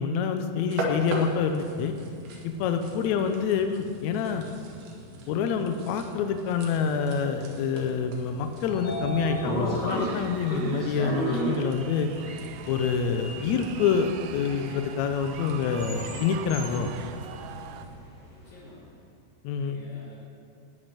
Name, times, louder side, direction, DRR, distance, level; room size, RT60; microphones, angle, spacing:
voice 1, 0.0-1.9 2.4-4.5 5.3-12.1 12.7-16.9 19.4-19.8, left 6 dB, 90° left, 7 dB, 1.6 m, -27 dB
sound 1, 0.6-18.0, equal, 65° right, 3.1 m, -41 dB
Sliding door, 8.2-18.4, right 1 dB, 30° left, 2.6 m, -35 dB
sound 2, 9.9-17.9, right 10 dB, 85° right, 2.5 m, -44 dB
voice 2, 18.3-18.9 19.6-20.2, left 1 dB, 70° left, -6 dB, 3.9 m, -51 dB
11.5 x 8.0 x 9.3 m, 2.3 s
omnidirectional pair, 4.3 m